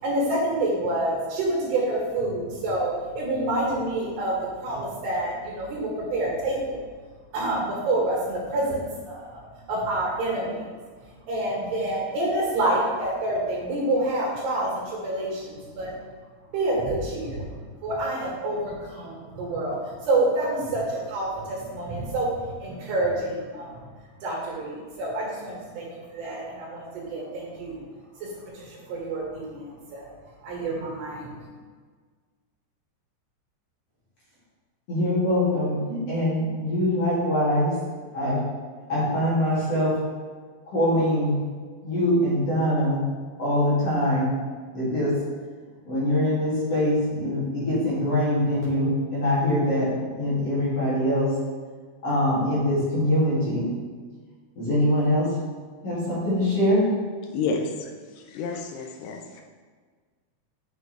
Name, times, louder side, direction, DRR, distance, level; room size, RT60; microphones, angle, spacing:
voice 1, 0.0-6.8 7.3-10.6 11.3-15.9 16.5-17.5 17.8-23.9 24.2-27.8 28.2-28.3 28.5-30.1 30.4-31.3, right 1 dB, 75° right, -3 dB, 3.8 m, -28 dB
voice 2, 34.9-37.7 38.1-38.4 38.9-39.9 40.7-41.4 41.8-43.0 43.4-44.3 44.7-45.1 45.8-51.3 52.0-53.6 54.6-55.2 55.8-56.9, left 1 dB, 45° left, -10 dB, 2.9 m, -23 dB
voice 3, 58.4-59.4, left 5 dB, 85° left, 3 dB, 2.8 m, -29 dB
7.1 x 6.5 x 3.2 m, 1.5 s
omnidirectional pair, 4.9 m